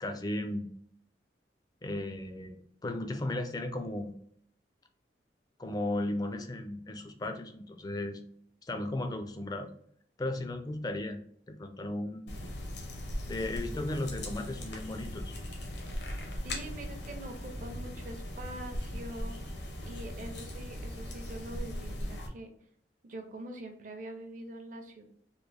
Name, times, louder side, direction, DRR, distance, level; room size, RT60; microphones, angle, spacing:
voice 1, 0.0-0.7 1.8-2.6 2.8-4.1 5.6-8.2 8.6-9.7 10.2-11.2 11.5-12.3 13.3-15.3, left 1 dB, 20° left, 6 dB, 0.3 m, -35 dB
sound 1, 12.3-22.3, left 1 dB, 75° left, 0.7 m, -39 dB
voice 2, 16.4-19.4 19.8-22.5 23.0-25.1, right 1 dB, 45° right, 4 dB, 0.6 m, -44 dB
3.6 x 2.1 x 3.2 m, 0.64 s
head